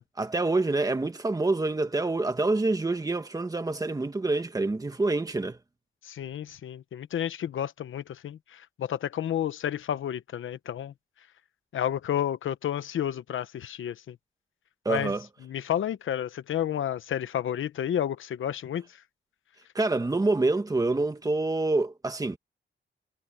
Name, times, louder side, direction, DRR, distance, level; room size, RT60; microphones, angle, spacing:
voice 1, 0.2-5.6 14.8-15.2 19.7-22.4, right 2 dB, 15° right, 1.7 m, -26 dB
voice 2, 6.0-11.3 11.7-14.2 14.9-15.1 15.4-19.0, left 10 dB, 80° left, 0.9 m, -31 dB
wide cardioid pair, 155°, 20 cm